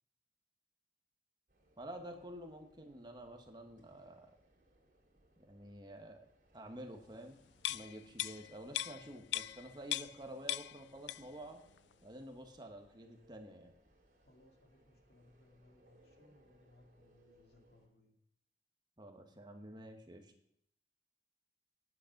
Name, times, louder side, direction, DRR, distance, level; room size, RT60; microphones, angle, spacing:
sound 1, 1.5-17.9, right 1 dB, 50° right, 3.0 m, -70 dB
voice 1, 1.8-4.3 5.4-6.2 6.5-7.4 7.7-11.6 12.0-13.7 19.0-20.3, right 1 dB, 25° right, 4 dB, 1.3 m, -50 dB
sound 2, 7.6-10.2 10.5-11.4 11.8-11.9, left 14 dB, 90° left, 0.4 m, -40 dB
voice 2, 14.2-18.2, left 1 dB, 70° left, 3 dB, 2.1 m, -66 dB
10.5 x 9.8 x 6.0 m, 0.72 s
head